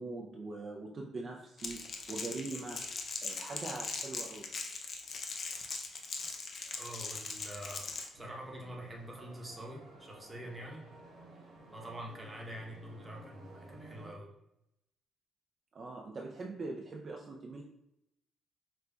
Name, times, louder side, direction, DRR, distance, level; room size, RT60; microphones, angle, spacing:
voice 1, 0.0-2.8 3.2-4.5 15.7-17.6, right 3 dB, 45° right, 0 dB, 0.3 m, -42 dB
Crackle, 1.6-8.1, left 4 dB, 50° left, 0.5 m, -40 dB
voice 2, 6.8-7.9 8.1-10.8 11.7-14.3, right 1 dB, 15° right, -1 dB, 0.8 m, -45 dB
sound 1, 8.1-14.1, right 1 dB, 75° right, 1.1 m, -54 dB
4.9 x 2.2 x 2.2 m, 0.83 s
cardioid pair, 90°, 0 cm